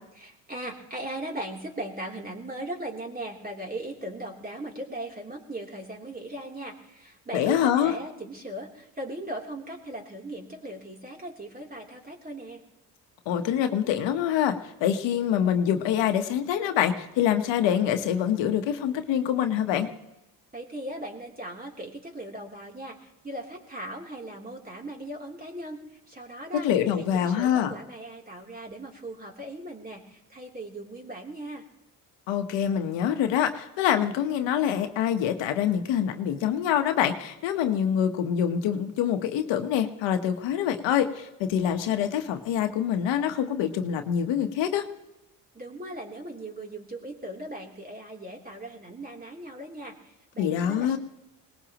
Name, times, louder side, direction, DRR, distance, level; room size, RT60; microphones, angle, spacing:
voice 1, 0.1-12.6 20.5-25.8 26.1-31.6 45.5-51.0, right 1 dB, 20° right, 0 dB, 3.3 m, -38 dB
voice 2, 7.3-8.0 13.3-19.9 26.6-27.7 32.3-44.8 50.4-51.0, left 9 dB, 80° left, 7 dB, 1.2 m, -25 dB
21.5 x 19.0 x 3.0 m, 0.93 s
supercardioid pair, 70°, 43 cm